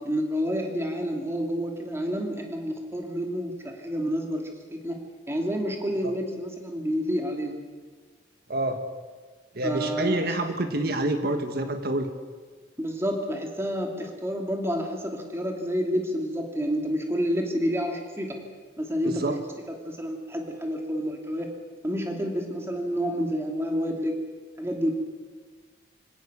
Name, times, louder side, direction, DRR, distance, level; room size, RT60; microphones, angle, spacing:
voice 1, 0.1-7.6 9.6-10.3 12.8-18.4 18.8-19.2 19.8-21.5 21.8-24.1 24.6-25.0, equal, 15° right, 2 dB, 2.7 m, -29 dB
voice 2, 8.5-8.8 9.5-12.1 19.0-19.4, right 1 dB, 50° right, 7 dB, 1.6 m, -27 dB
25.5 x 17.0 x 6.9 m, 1.5 s
head